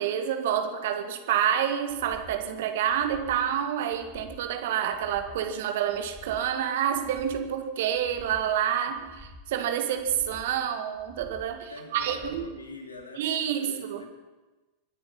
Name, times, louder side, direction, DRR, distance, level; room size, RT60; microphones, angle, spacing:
voice 1, 0.0-12.4 13.2-14.0, right 9 dB, 55° right, 6 dB, 1.8 m, -28 dB
sound 1, 1.9-2.4 2.9-3.5 3.9-4.5 4.9-5.5 5.9-6.5 6.9-7.5 7.9-8.5 8.9-9.5 9.9-10.5 10.9-11.5 12.0-12.5 13.0-13.1, left 2 dB, 10° left, 1.8 m, -49 dB
voice 2, 11.7-14.1, left 2 dB, 75° left, 3 dB, 2.7 m, -44 dB
25.5 x 10.0 x 5.5 m, 1.1 s
figure-of-eight pair, 90°, 0 cm